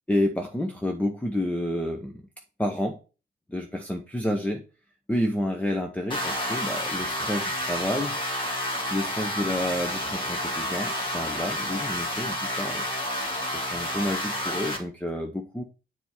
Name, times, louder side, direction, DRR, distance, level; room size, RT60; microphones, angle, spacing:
voice 1, 0.1-2.3 2.6-3.0 3.5-4.6 5.1-8.5 8.9-12.8 13.5-15.6, left 1 dB, 5° left, 3 dB, 0.8 m, -29 dB
sound 1, 6.1-14.8, equal, 25° left, 2.4 m, -30 dB
6.9 x 3.5 x 5.9 m, 0.34 s
cardioid pair, 90°, 20 cm